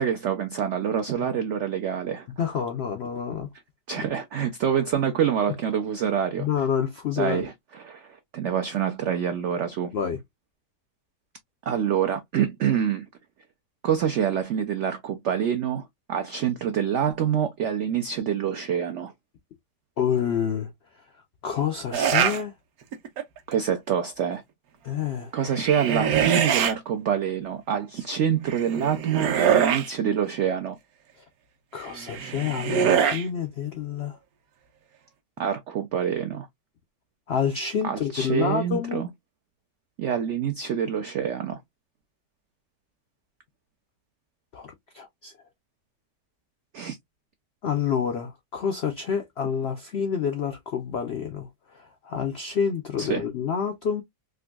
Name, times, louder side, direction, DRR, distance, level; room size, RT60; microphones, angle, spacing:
voice 1, 0.0-2.3 3.9-6.5 7.2-9.9 11.7-13.1 13.8-19.1 23.5-24.4 25.3-30.8 35.4-36.5 37.8-39.1 40.0-41.6 46.7-47.0 53.0-53.2, right 8 dB, 85° right, 0.6 m, -26 dB
voice 2, 2.4-3.5 6.4-7.5 9.9-10.2 20.0-20.7 21.4-22.5 24.8-25.3 31.7-34.2 37.3-39.1 44.5-45.3 47.6-51.5 51.7-54.0, left 7 dB, 85° left, 0.5 m, -28 dB
sound 1, 21.9-22.4 22.9-23.4 25.4-26.7 28.5-29.9 31.9-33.2, right 8 dB, 70° right, 1.0 m, -24 dB
3.7 x 2.6 x 2.2 m
omnidirectional pair, 1.8 m